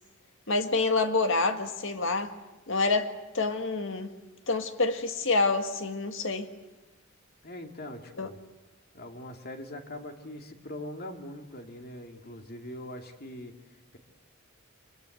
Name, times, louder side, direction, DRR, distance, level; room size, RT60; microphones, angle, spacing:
voice 1, 0.5-2.3 2.7-4.1 4.5-6.5 8.2-8.3, left 3 dB, 65° left, 1.9 m, -27 dB
voice 2, 7.4-8.4 8.9-14.0, left 1 dB, 50° left, 2.5 m, -42 dB
25.0 x 23.0 x 7.9 m
head